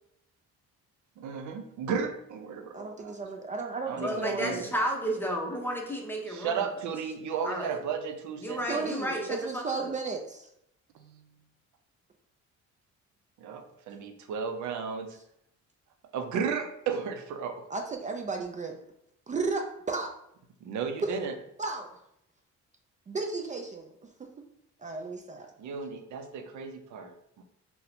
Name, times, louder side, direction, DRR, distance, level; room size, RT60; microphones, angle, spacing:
voice 1, 1.2-3.2 3.9-4.7 6.3-8.8 10.9-11.2 13.4-15.2 16.1-17.7 20.6-21.3 25.6-27.4, right 6 dB, 75° right, 6 dB, 0.5 m, -34 dB
voice 2, 2.7-4.6 8.7-10.5 17.7-18.7 19.3-20.1 21.0-21.2 21.6-22.0 23.1-23.9 24.8-25.5, right 4 dB, 25° right, 3 dB, 0.3 m, -34 dB
voice 3, 4.0-6.6 7.4-7.8 8.4-9.9, equal, 5° left, 0 dB, 0.7 m, -32 dB
2.7 x 2.1 x 4.0 m, 0.76 s
cardioid pair, 90°, 30 cm